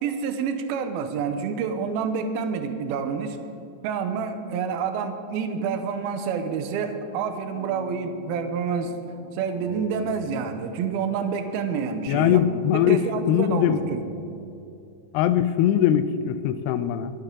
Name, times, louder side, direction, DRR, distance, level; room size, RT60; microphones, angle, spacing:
voice 1, 0.0-3.4 3.8-8.9 9.3-12.4 12.7-14.0, right 6 dB, 80° right, 7 dB, 2.3 m, -28 dB
sound 1, 6.6-10.5 10.7-14.5, right 1 dB, 20° left, 1.9 m, -42 dB
voice 2, 12.1-13.8 15.1-17.1, left 10 dB, 80° left, 11 dB, 2.4 m, -21 dB
23.0 x 9.0 x 3.8 m, 2.6 s
omnidirectional pair, 5.3 m